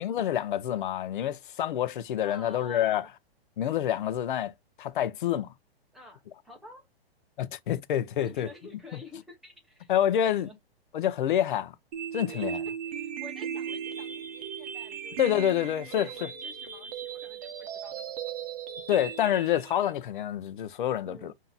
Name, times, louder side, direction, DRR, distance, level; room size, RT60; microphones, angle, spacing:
voice 1, 0.0-3.1 3.6-5.5 7.4-8.5 9.9-10.5 10.9-11.7 12.1-12.6 15.2-16.3 18.9-21.3, left 11 dB, 55° left, 0.7 m, -27 dB
voice 2, 2.2-3.1 5.9-6.9 8.2-10.6 12.2-12.6 12.9-18.2 21.0-21.3, left 2 dB, ahead, 0.7 m, -50 dB
sound 1, 11.9-19.9, right 8 dB, 35° right, 0.8 m, -37 dB
5.6 x 2.7 x 2.3 m
hypercardioid pair, 170°, 31 cm